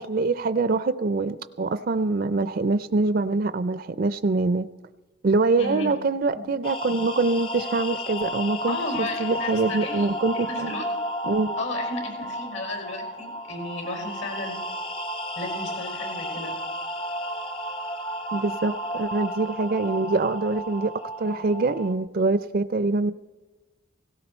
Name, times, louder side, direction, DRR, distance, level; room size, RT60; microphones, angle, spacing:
voice 1, 0.0-4.7 5.2-8.8 9.2-10.7 11.2-11.6 18.3-20.9 21.2-23.1, right 3 dB, 50° right, 13 dB, 0.4 m, -24 dB
voice 2, 5.6-5.9 8.7-10.1 10.3-10.8 11.6-14.6 15.4-16.6, left 2 dB, 80° left, 2 dB, 5.7 m, -34 dB
sound 1, 6.6-21.9, equal, 25° left, 0.7 m, -33 dB
17.5 x 16.5 x 4.4 m, 1.2 s
head